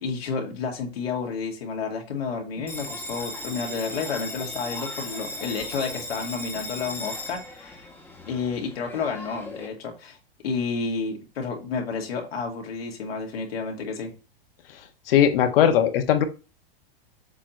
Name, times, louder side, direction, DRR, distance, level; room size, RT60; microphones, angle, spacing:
voice 1, 0.0-7.9 8.3-10.2 10.4-14.1, left 5 dB, 85° left, 1 dB, 2.5 m, -30 dB
Bell, 2.7-9.7, left 1 dB, 5° left, 1.2 m, -37 dB
voice 2, 15.1-16.2, left 9 dB, 65° left, 6 dB, 1.5 m, -19 dB
7.4 x 2.9 x 5.2 m, 0.31 s
hypercardioid pair, 135°, 30 cm